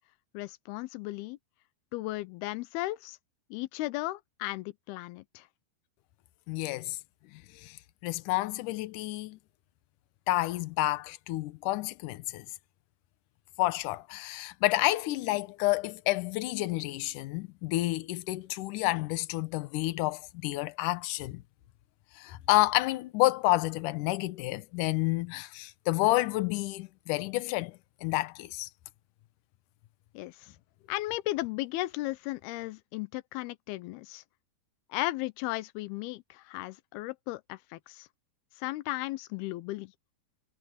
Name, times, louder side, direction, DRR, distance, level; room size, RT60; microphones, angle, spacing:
voice 1, 0.3-1.4 1.9-3.2 3.5-5.5 30.1-30.5 30.9-34.2 34.9-38.1 38.6-39.9, left 18 dB, 90° left, 2.7 m, -35 dB
voice 2, 6.5-7.0 7.3-7.8 8.0-9.4 10.3-12.5 13.6-21.4 22.2-28.7, left 18 dB, 70° left, 2.1 m, -29 dB
omnidirectional pair, 4.4 m